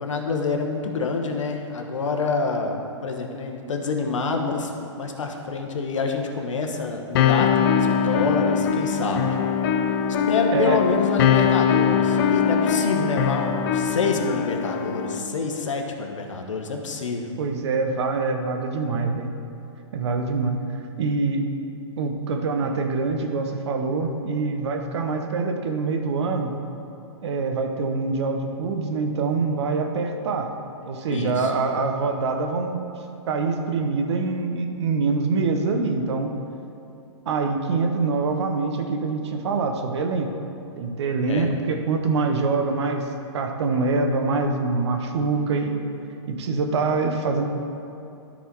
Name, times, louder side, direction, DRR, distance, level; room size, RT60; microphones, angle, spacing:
voice 1, 0.0-9.4 10.3-17.3 31.1-31.5 41.3-41.5, left 4 dB, 85° left, 3 dB, 1.2 m, -27 dB
sound 1, 7.2-15.2, left 7 dB, 50° left, 0.6 m, -22 dB
voice 2, 17.4-19.3 19.9-20.6 21.0-21.4 22.0-26.5 27.2-30.5 30.9-32.9 33.3-36.4 37.3-40.3 40.8-43.1 43.3-45.8 46.3-47.5, right 4 dB, 65° right, 5 dB, 1.0 m, -25 dB
12.5 x 4.3 x 4.6 m, 2.7 s
hypercardioid pair, 145°, 16 cm